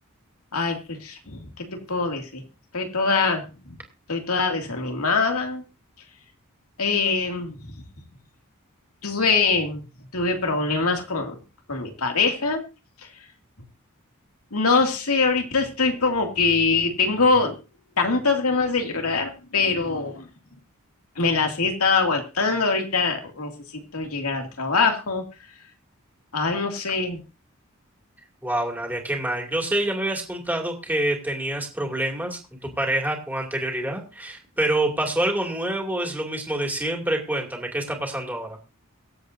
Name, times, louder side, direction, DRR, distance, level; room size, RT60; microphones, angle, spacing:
voice 1, 0.5-2.4 2.7-3.8 4.1-5.6 6.8-8.1 9.0-9.9 10.1-11.4 11.7-12.7 13.0-13.3 14.5-17.6 18.0-20.3 21.2-25.5 26.3-27.2, left 4 dB, 85° left, 3 dB, 2.5 m, -24 dB
voice 2, 28.4-38.5, right 1 dB, 10° right, 1 dB, 2.6 m, -27 dB
23.5 x 7.9 x 2.7 m, 0.31 s
head